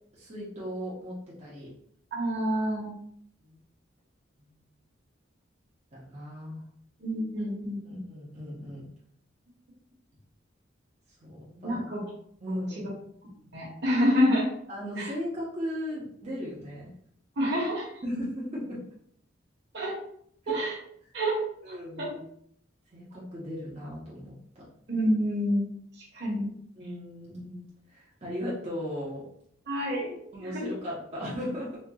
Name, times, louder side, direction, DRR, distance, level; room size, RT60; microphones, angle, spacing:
voice 1, 0.1-1.7 3.4-3.6 4.4-4.7 5.9-6.6 7.8-8.9 11.2-11.8 12.4-12.9 14.7-16.9 18.0-18.8 20.4-20.5 21.6-22.2 22.9-24.6 26.8-29.2 30.3-31.7, equal, 35° right, -7 dB, 0.9 m, -37 dB
voice 2, 2.1-2.9 7.0-8.0 11.6-12.0 12.5-12.9 13.5-14.5 15.0-15.1 17.4-17.9 19.7-19.9 20.5-20.8 21.1-21.4 21.7-22.1 24.9-25.6 26.0-26.5 29.7-30.1 30.4-30.6, equal, 60° right, -3 dB, 1.3 m, -28 dB
4.2 x 2.9 x 2.3 m, 0.67 s
head